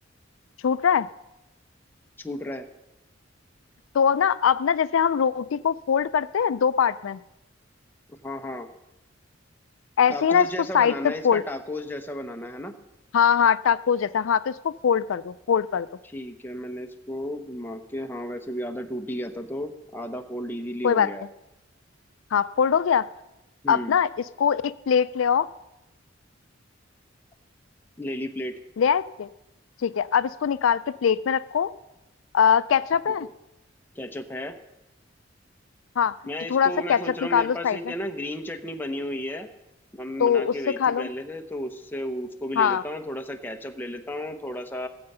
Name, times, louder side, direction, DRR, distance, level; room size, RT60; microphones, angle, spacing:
voice 1, 0.6-1.1 3.9-7.2 10.0-10.5 10.7-10.9 11.2-11.4 13.1-15.9 20.8-21.1 22.3-23.1 23.7-24.1 24.4-25.5 28.8-29.3 29.8-31.7 32.3-33.3 36.0-36.2 36.5-37.0 37.3-37.8 40.2-41.1 42.6-42.8, left 7 dB, 90° left, 15 dB, 0.4 m, -22 dB
voice 2, 2.2-2.7 8.1-8.7 10.1-12.7 16.0-21.2 23.6-24.0 28.0-28.5 33.0-33.3 34.0-34.6 36.3-39.5 39.9-44.9, left 1 dB, 10° left, 5 dB, 0.8 m, -33 dB
16.5 x 7.9 x 5.5 m, 0.93 s
head